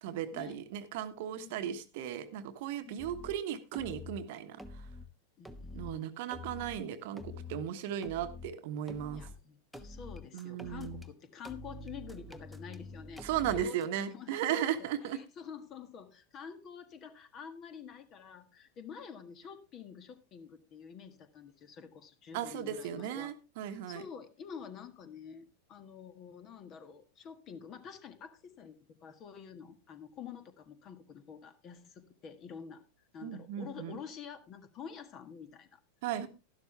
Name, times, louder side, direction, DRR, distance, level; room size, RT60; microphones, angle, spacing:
voice 1, 0.0-4.6 5.7-9.2 10.3-11.0 13.2-15.2 22.3-24.0 33.2-34.0 36.0-36.3, right 10 dB, 50° right, 9 dB, 1.2 m, -36 dB
sound 1, 3.0-3.4 3.7-4.2 4.6-5.1 5.5-5.9 6.3-6.8 7.2-7.6 8.0-8.5 8.9-9.4 9.7-11.1 11.4-13.9, left 2 dB, ahead, 1.1 m, -46 dB
voice 2, 5.4-6.1 9.1-23.3 23.7-35.8 36.2-36.3, left 7 dB, 30° left, 11 dB, 1.6 m, -48 dB
12.0 x 11.5 x 3.4 m, 0.29 s
figure-of-eight pair, 90°, 0 cm